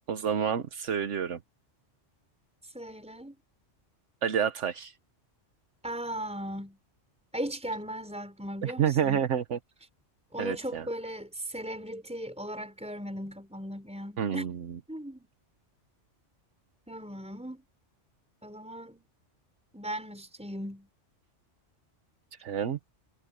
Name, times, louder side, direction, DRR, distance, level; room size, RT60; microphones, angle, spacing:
voice 1, 0.1-1.4 4.2-4.9 8.6-9.6 10.4-10.8 14.2-14.8 22.4-22.8, right 8 dB, 80° right, 1.3 m, -29 dB
voice 2, 2.7-3.4 5.8-6.8 7.3-9.3 10.3-14.5 14.9-15.3 16.9-17.6 18.4-19.1 19.7-20.9, equal, 5° right, 5.3 m, -37 dB
omnidirectional pair, 1.2 m